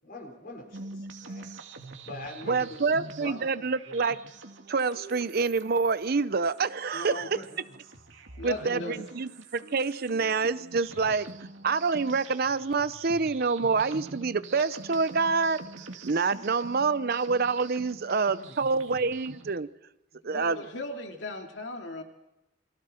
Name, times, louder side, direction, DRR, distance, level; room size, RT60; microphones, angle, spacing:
voice 1, 0.0-1.4 2.0-4.1 7.3-7.6 8.5-9.0 11.0-11.2 18.5-18.9, left 2 dB, 50° left, 2 dB, 4.8 m, -45 dB
sound 1, 0.7-19.6, right 3 dB, 90° right, 2.2 m, -46 dB
voice 2, 2.5-4.2 4.7-7.4 8.4-11.3 11.6-15.6 16.0-19.7 20.2-20.6, right 4 dB, 55° right, 14 dB, 0.7 m, -27 dB
voice 3, 6.9-7.3 8.4-9.1 20.2-22.0, left 2 dB, 70° left, 3 dB, 2.5 m, -37 dB
28.5 x 23.0 x 4.4 m, 0.91 s
head